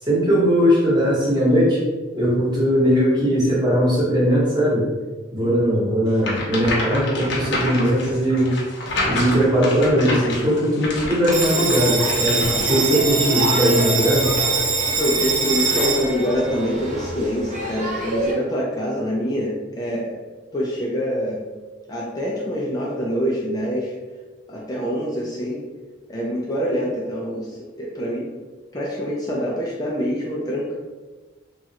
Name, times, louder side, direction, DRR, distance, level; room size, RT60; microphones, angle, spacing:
voice 1, 0.0-1.8 2.1-4.9 5.3-8.5 9.0-14.3, equal, 20° right, -6 dB, 1.0 m, -19 dB
voice 2, 5.4-5.8 15.0-20.2 20.5-21.5 21.9-24.0 24.5-25.6 26.1-28.3 28.7-30.8, equal, 20° left, -4 dB, 0.4 m, -25 dB
sound 1, 6.2-12.6, left 2 dB, 60° left, 0.8 m, -28 dB
Bell, 11.3-18.3, right 3 dB, 40° right, 0.6 m, -23 dB
3.0 x 2.4 x 2.7 m, 1.3 s
head